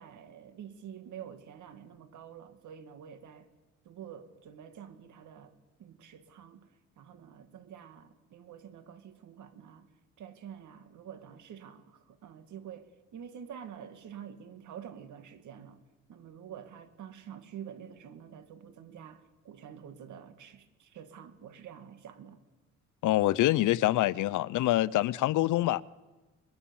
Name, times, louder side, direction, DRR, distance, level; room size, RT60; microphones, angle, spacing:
voice 1, 0.0-3.5 3.8-5.5 5.8-6.7 7.0-9.9 10.2-15.8 16.1-22.4, right 8 dB, 75° right, 2.3 m, -48 dB
voice 2, 23.0-25.8, left 16 dB, 80° left, 0.7 m, -25 dB
23.0 x 21.5 x 7.2 m
cardioid pair, 90°, 30 cm